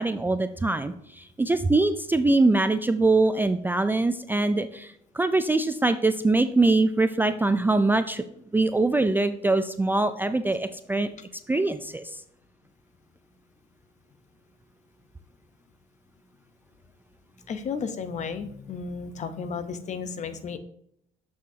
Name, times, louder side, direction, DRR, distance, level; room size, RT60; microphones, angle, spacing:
voice 1, 0.0-8.2 8.5-11.1 11.5-12.1, right 2 dB, 10° right, 10 dB, 0.3 m, -23 dB
voice 2, 17.5-20.6, left 5 dB, 45° left, 11 dB, 0.8 m, -33 dB
7.4 x 6.3 x 2.8 m, 0.70 s
cardioid pair, 110°, 17 cm